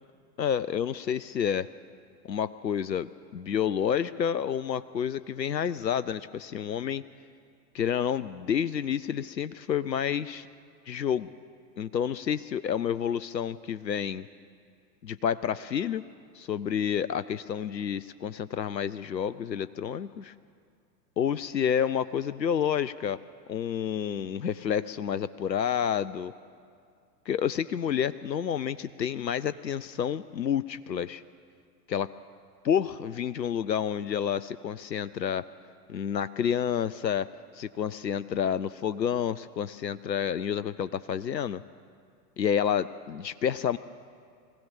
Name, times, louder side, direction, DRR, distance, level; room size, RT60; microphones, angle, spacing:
voice 1, 0.4-1.7 2.2-7.0 7.7-10.5 10.9-11.3 11.8-14.3 15.0-16.0 16.3-20.3 21.2-23.2 23.5-26.3 27.3-31.2 31.9-32.1 32.6-35.5 35.9-37.3 37.5-41.6 42.4-43.8, left 8 dB, 90° left, 16 dB, 0.5 m, -29 dB
22.5 x 16.0 x 7.2 m, 2.2 s
figure-of-eight pair, 90°, 49 cm